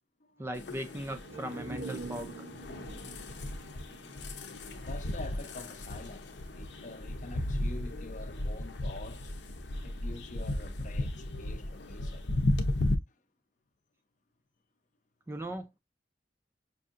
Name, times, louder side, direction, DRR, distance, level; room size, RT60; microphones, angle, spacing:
voice 1, 0.4-2.3 15.3-15.8, right 1 dB, 15° right, 0.4 m, -38 dB
sound 1, 0.5-12.9, left 1 dB, 80° left, 0.7 m, -35 dB
sound 2, 1.1-4.8 5.1-5.2, right 3 dB, 80° right, 0.5 m, -44 dB
voice 2, 4.7-9.3 9.8-12.3 13.1-13.2, left 2 dB, 45° left, 0.6 m, -46 dB
5.4 x 2.7 x 2.5 m
head